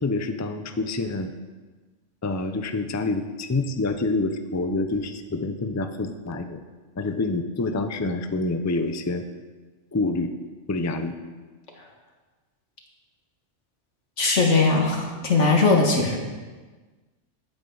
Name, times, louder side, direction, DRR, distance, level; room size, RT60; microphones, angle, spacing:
voice 1, 0.0-1.3 2.2-6.6 7.0-9.2 9.9-10.3 10.7-11.2, left 3 dB, 20° left, 7 dB, 0.5 m, -27 dB
voice 2, 14.2-16.2, left 3 dB, 85° left, 1 dB, 2.1 m, -20 dB
15.0 x 8.7 x 3.9 m, 1.3 s
omnidirectional pair, 1.2 m